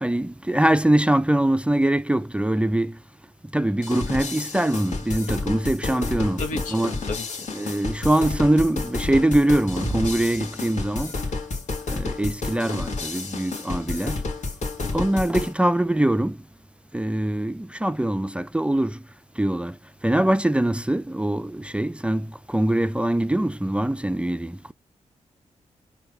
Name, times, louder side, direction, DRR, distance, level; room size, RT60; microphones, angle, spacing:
voice 1, 0.0-2.9 3.5-7.0 7.5-11.1 11.9-14.2 14.9-16.4 16.9-19.0 19.4-19.7 20.0-24.7, right 1 dB, 10° right, 0.3 m, -23 dB
sound 1, 3.8-15.5, left 3 dB, 70° left, 1.5 m, -30 dB
voice 2, 6.4-6.8 7.1-7.4 14.8-15.0, left 3 dB, 90° left, 1.0 m, -32 dB
4.6 x 2.3 x 4.7 m
cardioid pair, 60°, 13 cm